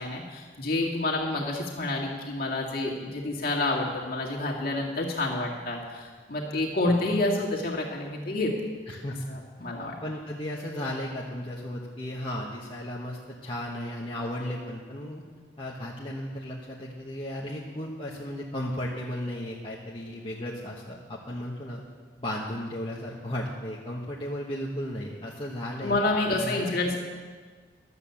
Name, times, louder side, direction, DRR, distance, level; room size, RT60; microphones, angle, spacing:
voice 1, 0.0-8.5 9.3-9.9 25.8-27.0, left 2 dB, 50° left, -2 dB, 2.1 m, -28 dB
voice 2, 6.5-7.0 8.9-9.2 10.0-15.2 15.6-21.8 22.2-26.7, left 1 dB, 25° left, -5 dB, 1.1 m, -35 dB
12.5 x 8.1 x 7.0 m, 1.5 s
head